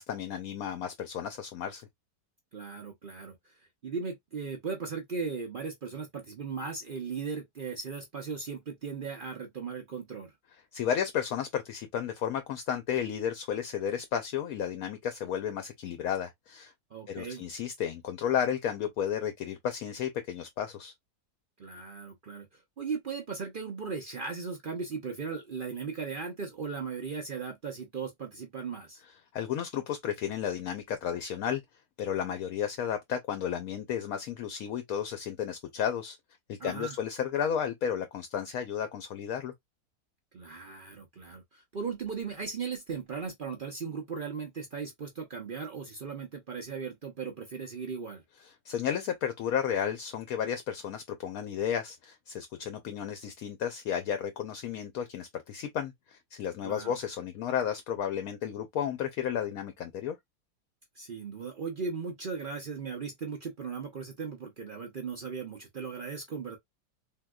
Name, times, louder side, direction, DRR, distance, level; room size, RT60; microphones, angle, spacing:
voice 1, 0.0-1.9 10.7-16.7 17.1-20.9 29.3-31.6 32.0-36.2 36.5-39.5 48.6-60.2, left 8 dB, 70° left, 0.9 m, -33 dB
voice 2, 2.5-10.3 16.9-17.4 21.6-29.0 36.6-37.0 40.3-48.2 56.6-56.9 60.9-66.6, right 5 dB, 70° right, 0.5 m, -37 dB
3.6 x 2.7 x 2.2 m
omnidirectional pair, 1.8 m